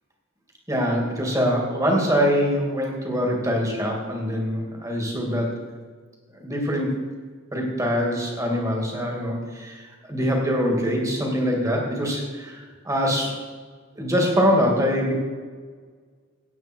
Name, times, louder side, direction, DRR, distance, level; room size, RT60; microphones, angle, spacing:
voice 1, 0.7-5.6 6.4-6.9 7.5-9.8 10.1-13.4 14.0-15.1, equal, 15° right, 0 dB, 2.5 m, -23 dB
16.0 x 9.2 x 4.6 m, 1.6 s
head